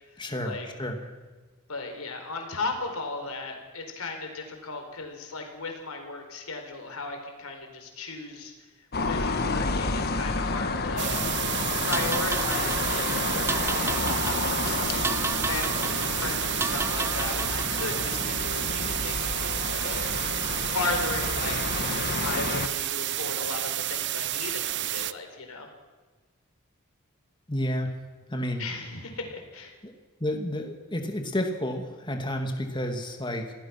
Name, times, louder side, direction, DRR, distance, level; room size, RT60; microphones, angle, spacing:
voice 1, 0.2-1.1 27.5-28.0 28.3-28.6 29.8-29.9 30.2-33.5, left 1 dB, 20° left, 4 dB, 2.4 m, -31 dB
voice 2, 1.7-8.5 9.0-11.2 11.8-15.1 15.4-20.2 20.7-21.6 22.1-25.7 28.6-29.7, left 3 dB, 85° left, 4 dB, 4.4 m, -36 dB
sound 1, 8.9-22.7, left 3 dB, 50° left, 1.4 m, -30 dB
sound 2, 11.0-25.1, right 13 dB, 55° right, 0.7 m, -30 dB
sound 3, 11.9-18.2, right 3 dB, 10° right, 0.7 m, -34 dB
26.5 x 17.5 x 6.0 m, 1.3 s
head